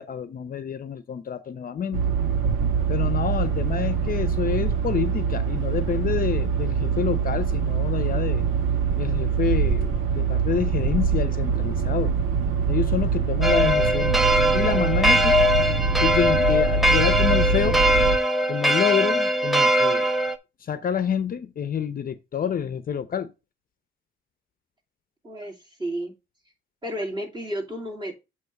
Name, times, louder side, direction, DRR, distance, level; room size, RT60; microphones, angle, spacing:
voice 1, 0.0-2.0 2.9-8.4 9.0-12.1 12.7-14.2 14.5-15.4 16.0-17.8 18.5-20.1 20.7-23.3, left 8 dB, 45° left, 0.7 m, -28 dB
sound 1, 1.9-18.2, right 5 dB, 80° right, 1.3 m, -24 dB
sound 2, 13.4-20.4, equal, ahead, 0.8 m, -21 dB
voice 2, 25.2-26.1 26.8-28.1, right 1 dB, 20° right, 2.4 m, -32 dB
7.9 x 3.1 x 5.7 m
cardioid pair, 90°, 20 cm